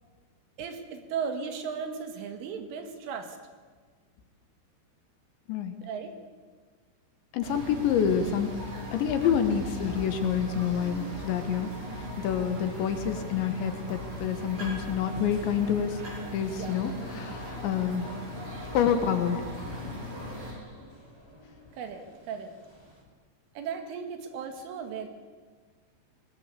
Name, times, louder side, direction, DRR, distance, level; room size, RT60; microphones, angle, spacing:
voice 1, 0.6-3.4 5.8-6.1 16.5-16.8 21.7-22.5 23.6-25.1, right 6 dB, 75° right, 6 dB, 4.5 m, -36 dB
voice 2, 7.3-8.5 8.9-11.7 12.0-16.0 16.3-18.1 18.7-19.4 19.8-20.0, left 8 dB, 70° left, 8 dB, 3.4 m, -28 dB
sound 1, 7.4-20.5, equal, 45° right, 7.4 m, -39 dB
sound 2, 14.5-23.0, equal, 5° right, 3.5 m, -47 dB
22.5 x 19.5 x 8.5 m, 1.5 s
omnidirectional pair, 5.8 m